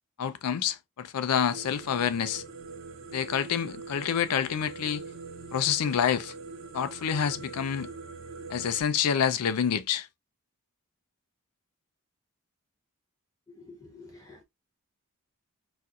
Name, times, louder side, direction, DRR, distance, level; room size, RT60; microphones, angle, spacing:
voice 1, 0.2-2.4 3.1-5.0 5.5-6.3 6.7-7.9 8.5-10.1, left 8 dB, 85° left, 0.4 m, -27 dB
sound 1, 1.5-8.8, right 4 dB, 60° right, 0.7 m, -43 dB
voice 2, 13.6-14.4, left 3 dB, 15° left, 0.6 m, -49 dB
4.1 x 2.4 x 2.3 m
head